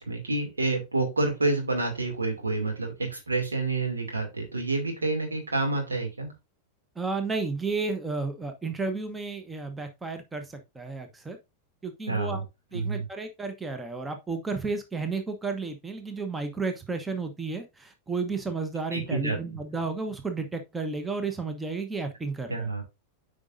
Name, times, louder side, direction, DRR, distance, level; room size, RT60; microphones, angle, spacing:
voice 1, 0.0-6.3 12.1-12.4 12.7-13.0 18.9-19.4 22.5-22.8, right 3 dB, 75° right, 2 dB, 2.5 m, -28 dB
voice 2, 6.9-11.4 11.8-12.4 12.7-22.7, right 4 dB, 10° right, 7 dB, 1.1 m, -32 dB
8.6 x 5.1 x 2.6 m, 0.23 s
figure-of-eight pair, 90°, 0 cm